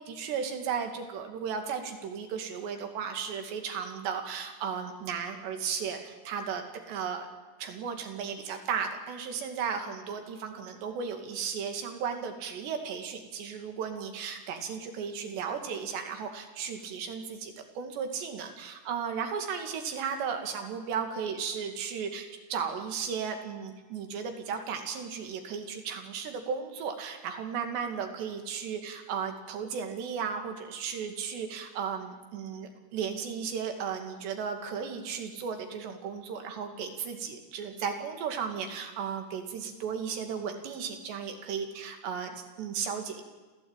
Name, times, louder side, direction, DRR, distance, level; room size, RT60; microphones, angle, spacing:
voice 1, 0.0-7.3 7.6-43.2, right 6 dB, 85° right, 5 dB, 4.5 m, -35 dB
27.5 x 15.5 x 9.0 m, 1.2 s
omnidirectional pair, 4.8 m